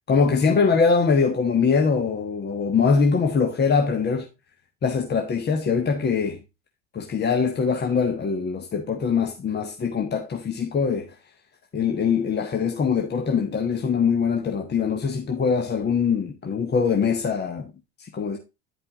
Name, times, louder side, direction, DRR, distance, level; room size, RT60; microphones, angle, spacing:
voice 1, 0.1-4.3 4.8-6.4 6.9-11.1 11.7-17.7 18.0-18.4, left 5 dB, 30° left, 1.4 m, -23 dB
10.0 x 5.5 x 3.7 m
hypercardioid pair, 70°, 32 cm